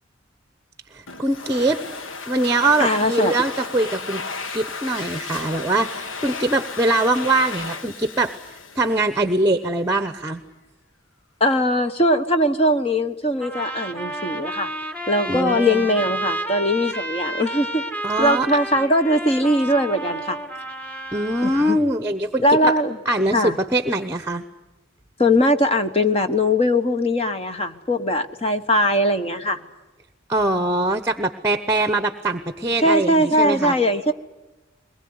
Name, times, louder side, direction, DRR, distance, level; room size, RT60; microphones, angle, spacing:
voice 1, 0.9-1.8 2.3-4.2 4.5-8.3 8.8-10.4 15.3-15.8 18.0-18.5 21.1-22.7 23.0-24.4 30.3-33.8, right 2 dB, 15° right, 11 dB, 1.0 m, -22 dB
Domestic sounds home sounds, 1.1-9.5, left 4 dB, 75° left, 1.3 m, -34 dB
voice 2, 2.8-3.3 11.4-14.7 15.1-17.8 18.2-20.4 21.4-21.8 22.4-23.0 23.3-23.6 25.2-29.6 32.8-34.1, left 1 dB, 30° left, 8 dB, 1.2 m, -20 dB
sound 1, 13.4-21.8, right 1 dB, 5° left, 1.5 m, -31 dB
22.0 x 21.0 x 9.6 m, 1.1 s
head